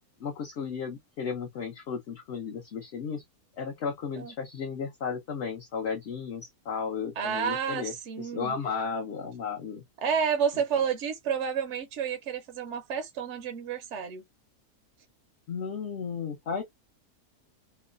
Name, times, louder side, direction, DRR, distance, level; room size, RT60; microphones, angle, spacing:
voice 1, 0.2-3.2 3.6-9.8 15.5-16.6, left 6 dB, 55° left, 0.9 m, -34 dB
voice 2, 7.2-8.5 10.0-14.2, right 7 dB, 65° right, 0.8 m, -30 dB
3.0 x 2.1 x 2.4 m
omnidirectional pair, 1.6 m